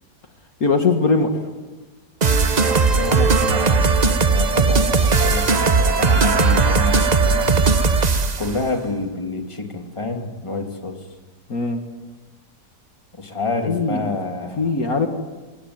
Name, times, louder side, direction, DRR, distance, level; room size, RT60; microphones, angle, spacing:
voice 1, 0.6-1.3 11.5-11.8 13.7-14.1 14.6-15.1, left 4 dB, 55° left, 5 dB, 2.3 m, -20 dB
sound 1, 2.2-8.5, right 4 dB, 30° right, 0.8 m, -17 dB
voice 2, 2.6-7.5 8.4-11.0 13.2-14.7, left 3 dB, 15° left, 3 dB, 2.8 m, -28 dB
25.5 x 21.0 x 9.6 m, 1.2 s
omnidirectional pair, 1.9 m